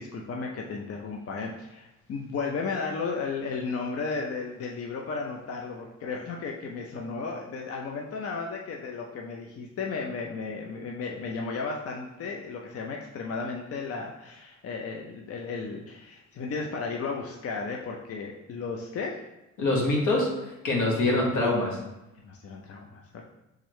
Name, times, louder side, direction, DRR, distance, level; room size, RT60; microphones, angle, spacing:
voice 1, 0.0-19.2 20.8-21.1 22.2-23.3, left 4 dB, 50° left, 0 dB, 0.6 m, -34 dB
voice 2, 19.6-21.8, left 2 dB, 80° left, -2 dB, 1.4 m, -25 dB
4.5 x 3.7 x 3.1 m, 0.99 s
cardioid pair, 90°, 30 cm